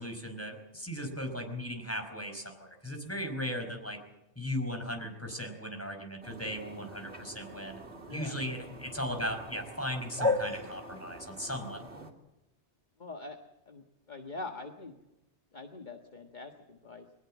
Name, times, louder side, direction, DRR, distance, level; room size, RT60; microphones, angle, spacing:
voice 1, 0.0-4.0 4.3-7.8 8.1-12.1, equal, 10° left, 5 dB, 4.9 m, -37 dB
sound 1, 6.2-12.1, left 2 dB, 65° right, 3.4 m, -38 dB
voice 2, 13.0-13.4 13.7-14.9 15.5-17.1, left 3 dB, 40° left, 5 dB, 1.7 m, -44 dB
23.0 x 20.0 x 7.5 m, 0.92 s
omnidirectional pair, 1.2 m